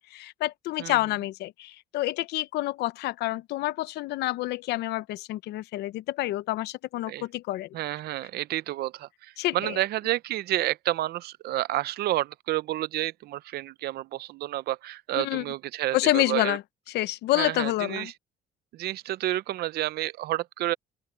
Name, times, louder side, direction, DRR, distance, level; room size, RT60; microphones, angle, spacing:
voice 1, 0.1-7.7 9.4-9.8 15.2-15.4 15.9-16.6 16.9-18.1, left 16 dB, 80° left, 0.8 m, -28 dB
voice 2, 7.7-16.6 17.3-18.1 18.7-20.7, right 15 dB, 70° right, 0.7 m, -30 dB
open air
cardioid pair, 110°, 17 cm